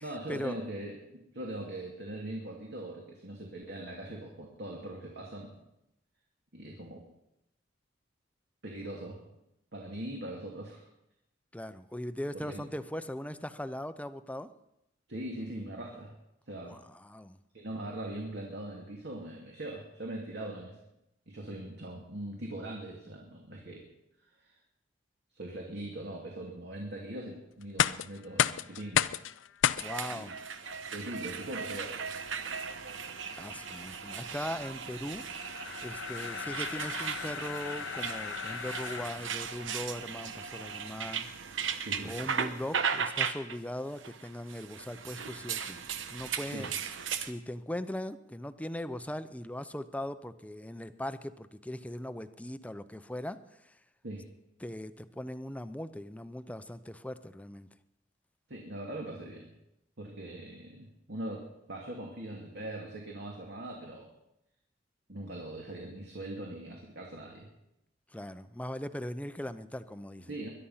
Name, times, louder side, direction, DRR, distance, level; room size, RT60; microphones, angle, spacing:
voice 1, 0.0-5.5 6.5-7.0 8.6-9.2 9.7-10.9 12.3-12.6 15.1-16.2 16.5-16.8 17.5-20.8 21.3-23.8 24.2-24.6 25.3-29.1 30.1-30.3 30.9-32.0 41.8-42.2 46.5-46.7 54.0-54.2 58.5-59.5 60.0-64.1 65.1-67.5 70.3-70.5, right 1 dB, 60° right, 0 dB, 2.6 m, -41 dB
voice 2, 11.5-14.5 16.7-17.4 29.8-30.3 33.3-35.2 35.8-41.3 42.0-45.8 46.1-46.7 47.2-53.4 53.7-53.8 54.6-57.7 68.1-70.4, left 1 dB, 10° left, 12 dB, 0.7 m, -39 dB
sound 1, 27.6-39.5, left 9 dB, 80° left, 0.5 m, -35 dB
sound 2, 29.8-47.3, right 6 dB, 85° right, 1.1 m, -37 dB
22.0 x 11.5 x 5.7 m, 0.85 s
head